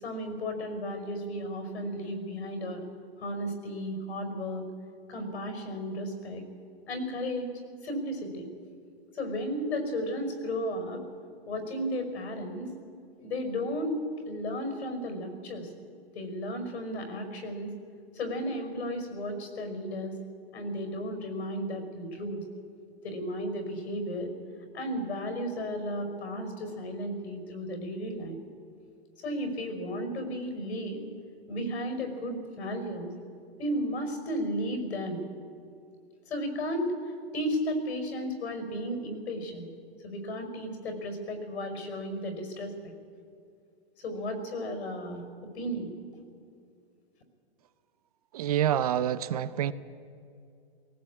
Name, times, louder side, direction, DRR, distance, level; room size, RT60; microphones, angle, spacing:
voice 1, 0.0-2.8 3.2-4.6 5.1-6.4 6.9-7.5 7.8-8.5 9.1-11.0 11.5-12.7 13.2-15.7 16.1-17.7 18.1-20.1 20.5-22.4 23.0-24.3 24.7-28.4 29.2-31.0 31.5-33.1 33.6-35.2 36.3-36.9 37.3-39.7 40.0-42.7 44.0-45.9, equal, 80° left, 6 dB, 5.5 m, -34 dB
voice 2, 48.3-49.7, right 10 dB, 35° right, 15 dB, 0.6 m, -27 dB
18.5 x 18.0 x 8.5 m, 2.4 s
hypercardioid pair, 165°, 32 cm